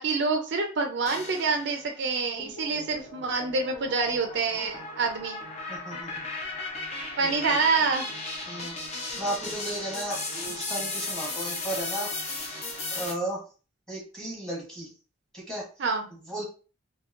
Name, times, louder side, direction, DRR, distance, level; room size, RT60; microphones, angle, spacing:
voice 1, 0.0-5.4 7.2-8.0 15.8-16.0, right 4 dB, 55° right, 5 dB, 0.4 m, -27 dB
sound 1, 1.1-1.9 2.4-13.1, left 2 dB, 30° left, 0.6 m, -36 dB
voice 2, 5.7-6.3 7.2-7.6 8.5-8.8 9.2-12.4 12.9-13.4 13.9-14.9 15.3-15.6 16.1-16.4, right 1 dB, 5° left, -4 dB, 1.1 m, -35 dB
2.9 x 2.6 x 2.5 m, 0.36 s
head